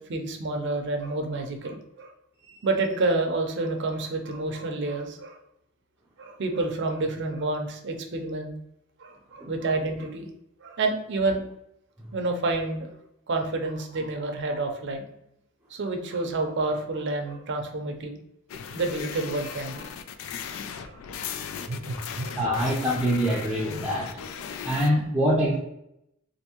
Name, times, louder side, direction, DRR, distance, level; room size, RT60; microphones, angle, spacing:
voice 1, 0.0-2.1 2.6-5.4 6.2-8.5 9.0-10.3 10.6-11.5 12.1-12.9 13.3-15.1 15.7-18.2 18.7-19.9 20.8-21.0 21.7-22.7 24.5-24.6, right 2 dB, 55° right, 4 dB, 0.6 m, -29 dB
sound 1, 18.5-24.9, left 7 dB, 70° left, 0.3 m, -37 dB
voice 2, 22.4-24.1 24.6-25.6, equal, 5° right, -5 dB, 0.5 m, -25 dB
3.5 x 2.6 x 2.9 m, 0.81 s
head